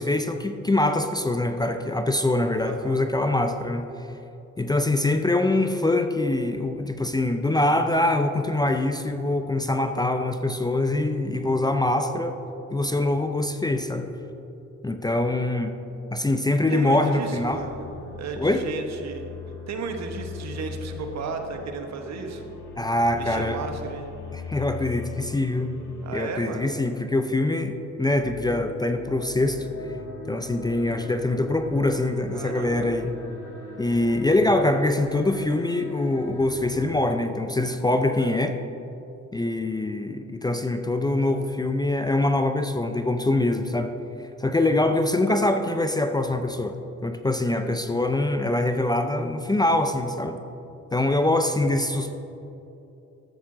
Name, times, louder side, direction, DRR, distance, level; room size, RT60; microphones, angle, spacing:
voice 1, 0.0-4.1 4.6-12.4 12.7-14.1 14.8-15.7 16.1-17.6 18.4-18.6 22.8-23.6 24.3-25.7 26.1-29.7 30.3-33.1 33.8-38.6 39.3-43.9 44.2-50.4 50.9-52.2, left 2 dB, 15° left, 7 dB, 0.5 m, -24 dB
voice 2, 2.6-3.0 16.7-17.9 18.1-19.2 19.7-22.5 23.1-24.1 26.0-26.7 32.3-33.1, right 5 dB, 60° right, 4 dB, 1.2 m, -34 dB
sound 1, 17.2-37.1, left 4 dB, 75° left, 2.2 m, -41 dB
13.0 x 7.1 x 3.8 m, 2.9 s
cardioid pair, 90°, 30 cm